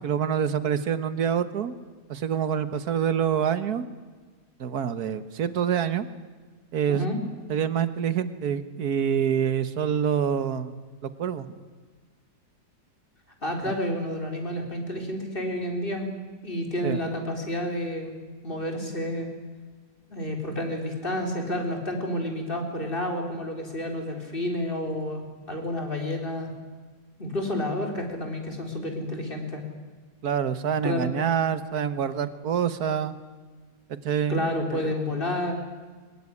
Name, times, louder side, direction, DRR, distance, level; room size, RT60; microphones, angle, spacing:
voice 1, 0.0-1.7 2.1-3.8 4.6-6.1 6.7-7.1 7.5-11.5 16.8-17.0 30.2-33.2 33.9-34.9, right 8 dB, 65° right, 13 dB, 1.7 m, -26 dB
voice 2, 6.9-7.2 13.4-16.1 16.4-18.2 18.4-19.3 20.1-26.5 27.2-29.6 30.8-31.1 34.3-35.5, left 1 dB, 30° left, 3 dB, 4.1 m, -30 dB
22.5 x 20.0 x 9.8 m, 1.4 s
omnidirectional pair, 1.8 m